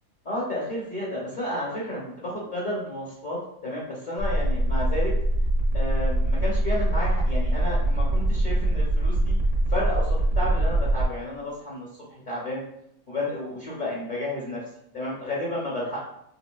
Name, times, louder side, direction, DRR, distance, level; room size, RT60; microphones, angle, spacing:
voice 1, 0.3-5.1 5.7-9.3 9.7-12.6 13.1-14.6 14.9-16.0, left 1 dB, 40° left, -6 dB, 0.8 m, -31 dB
sound 1, 4.2-11.0, right 1 dB, 60° right, 1.1 m, -23 dB
4.8 x 2.6 x 2.4 m, 0.75 s
omnidirectional pair, 1.5 m